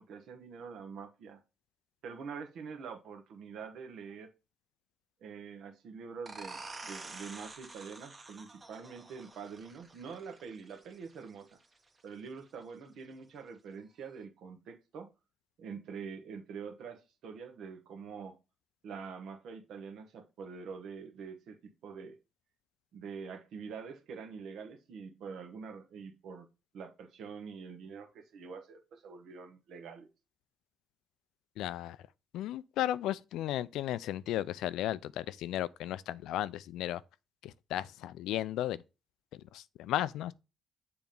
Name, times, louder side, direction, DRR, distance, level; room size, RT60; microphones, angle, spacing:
voice 1, 0.0-1.4 2.0-4.3 5.2-11.6 12.0-15.1 15.6-18.4 18.8-22.2 22.9-26.5 26.7-30.1, right 5 dB, 75° right, 1.2 m, -45 dB
sound 1, 6.3-11.7, right 3 dB, 30° right, 1.0 m, -48 dB
voice 2, 31.6-32.0 32.3-37.0 37.4-38.8 39.5-40.3, left 13 dB, 90° left, 0.3 m, -34 dB
7.0 x 3.0 x 5.3 m
cardioid pair, 90°, 0 cm